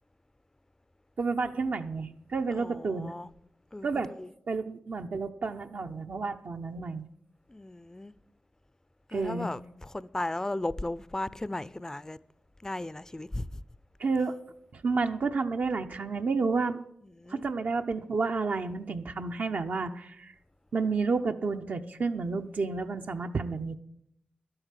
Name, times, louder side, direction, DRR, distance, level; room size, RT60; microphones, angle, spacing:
voice 1, 1.2-3.1 3.8-4.1 4.5-7.1 9.1-9.5 14.0-14.4 14.7-16.8 17.3-20.3 20.7-23.8, right 4 dB, 60° right, 0.8 m, -30 dB
voice 2, 2.5-3.3 3.7-3.9 4.2-4.3 7.5-8.1 9.1-12.2 12.6-13.6 17.2-17.4, left 1 dB, 15° left, 0.5 m, -36 dB
12.0 x 8.9 x 7.4 m
cardioid pair, 70°, 3 cm